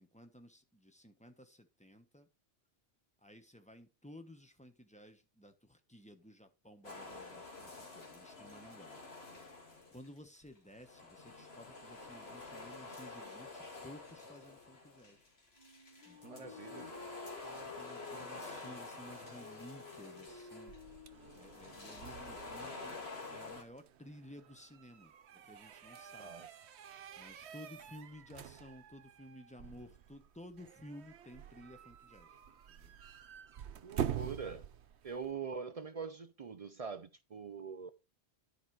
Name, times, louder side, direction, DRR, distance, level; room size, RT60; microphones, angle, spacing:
voice 1, 0.0-2.3 3.2-9.0 9.9-15.3 16.0-16.9 17.4-20.7 21.3-23.0 23.3-26.4 27.2-32.3 32.7-32.9, left 1 dB, 5° left, 0.9 m, -55 dB
sound 1, 6.8-10.2 10.4-23.6, left 3 dB, 65° left, 2.4 m, -49 dB
Wind instrument woodwind instrument, 15.5-22.4, left 4 dB, 35° left, 4.0 m, -54 dB
voice 2, 16.2-16.9 26.2-26.5 33.8-34.6 35.0-37.9, right 5 dB, 50° right, 0.4 m, -43 dB
sound 2, 20.3-35.3, right 9 dB, 75° right, 1.0 m, -47 dB
10.5 x 5.0 x 4.6 m
omnidirectional pair, 1.1 m